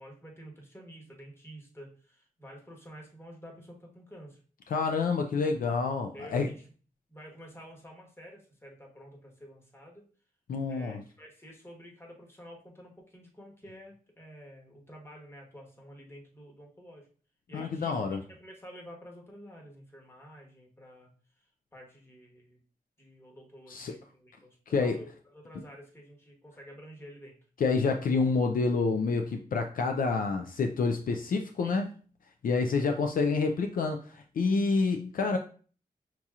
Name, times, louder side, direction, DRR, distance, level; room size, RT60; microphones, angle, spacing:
voice 1, 0.0-4.4 6.1-6.6 7.1-10.1 10.7-17.1 17.5-21.1 21.7-22.6 23.0-27.4 31.6-31.8, equal, 15° left, -1 dB, 1.2 m, -50 dB
voice 2, 4.7-6.5 10.5-11.0 17.5-18.2 23.7-23.9 24.7-25.0 27.6-31.9 32.4-35.4, left 4 dB, 65° left, 5 dB, 0.4 m, -28 dB
5.9 x 2.8 x 2.4 m, 0.41 s
wide cardioid pair, 95°, 16 cm